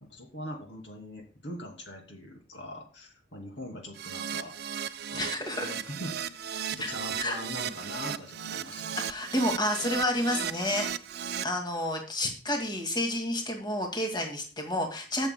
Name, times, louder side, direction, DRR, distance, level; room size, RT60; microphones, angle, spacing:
voice 1, 0.0-4.6 5.1-6.4 6.7-9.0, left 1 dB, 65° left, 2 dB, 2.6 m, -42 dB
Keyboard (musical), 3.9-11.4, right 8 dB, 55° right, 0.5 m, -36 dB
voice 2, 5.1-5.7 6.8-6.9 7.2-7.4 9.0-10.9 11.4-15.3, left 1 dB, 25° left, 2 dB, 2.1 m, -30 dB
20.0 x 7.0 x 2.2 m, 0.37 s
head